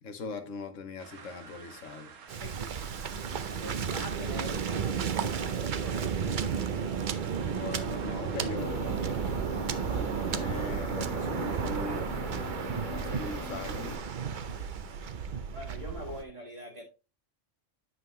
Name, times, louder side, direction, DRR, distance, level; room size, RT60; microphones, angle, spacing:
voice 1, 0.0-2.1 7.4-9.0 9.9-12.1 12.9-14.0, left 4 dB, 80° left, 1.4 m, -40 dB
sound 1, 1.0-8.5, right 6 dB, 90° right, 1.4 m, -50 dB
Waves surf, 2.3-16.2, right 7 dB, 50° right, 0.7 m, -33 dB
voice 2, 2.4-2.8 3.4-6.1 15.5-16.8, left 1 dB, 30° right, 1.6 m, -43 dB
sound 2, 8.6-14.0, left 4 dB, 55° left, 1.9 m, -41 dB
8.8 x 5.6 x 3.1 m
omnidirectional pair, 1.3 m